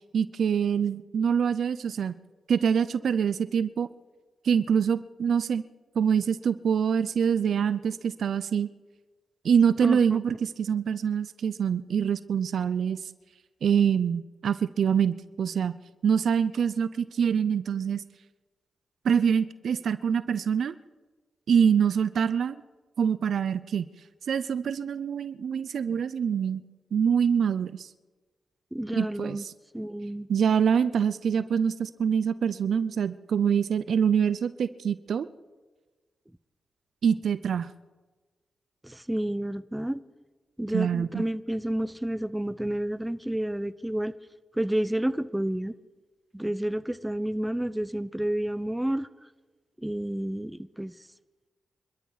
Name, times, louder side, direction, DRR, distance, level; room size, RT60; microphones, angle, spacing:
voice 1, 0.1-2.2 2.5-3.9 4.4-5.6 6.0-8.7 9.4-13.0 13.6-15.8 16.0-18.0 19.0-20.7 21.5-22.6 23.0-23.9 24.3-26.6 26.9-27.9 28.9-29.5 30.3-35.3 37.0-37.7 40.7-41.2, right 7 dB, 75° right, 15 dB, 0.5 m, -25 dB
voice 2, 9.8-10.2 28.7-29.4 29.7-30.3 38.8-40.0 40.6-44.1 44.5-45.7 46.3-49.1 49.8-50.9, right 1 dB, 10° right, 16 dB, 0.7 m, -30 dB
27.0 x 13.0 x 4.0 m, 1.3 s
supercardioid pair, 45°, 0 cm